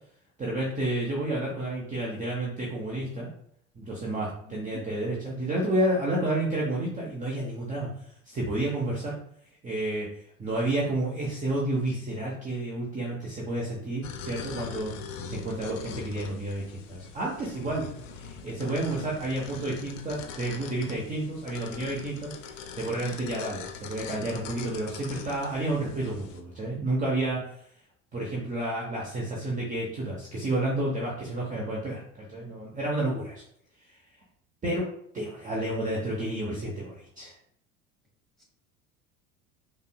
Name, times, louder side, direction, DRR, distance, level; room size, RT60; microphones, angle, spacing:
voice 1, 0.4-3.3 3.8-7.9 8.3-9.1 9.6-10.1 10.4-14.9 15.3-22.3 22.7-27.4 28.1-33.4 34.6-34.9 35.1-37.3, right 1 dB, 20° right, -4 dB, 0.8 m, -30 dB
voice 2, 4.4-4.8 22.9-23.4 38.4-38.5, right 4 dB, ahead, -2 dB, 1.2 m, -47 dB
sound 1, 14.0-26.4, left 6 dB, 70° left, 0.5 m, -42 dB
5.2 x 2.1 x 2.2 m, 0.68 s
figure-of-eight pair, 70°, 39 cm